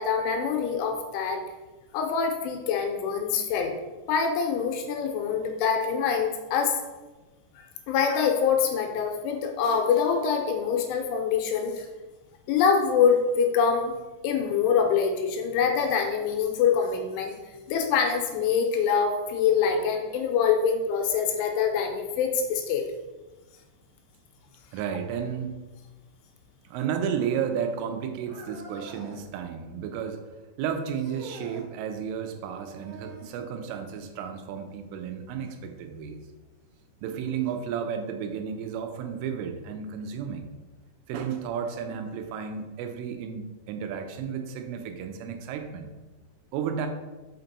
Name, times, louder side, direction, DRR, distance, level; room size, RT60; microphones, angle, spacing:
voice 1, 0.0-1.4 1.9-3.7 4.1-6.8 7.6-11.9 12.5-14.0 14.2-17.3 17.7-22.8, left 6 dB, 85° left, 3 dB, 3.1 m, -25 dB
voice 2, 24.7-25.6 26.7-36.2 37.0-40.5 41.1-45.9 46.5-46.9, right 7 dB, 85° right, 5 dB, 3.2 m, -33 dB
sound 1, 28.3-29.3 30.9-31.7 32.7-33.4 35.4-35.6 36.4-36.5 37.5-37.6, right 2 dB, 65° right, 2.3 m, -44 dB
5.9 x 5.8 x 4.0 m, 1.2 s
omnidirectional pair, 5.6 m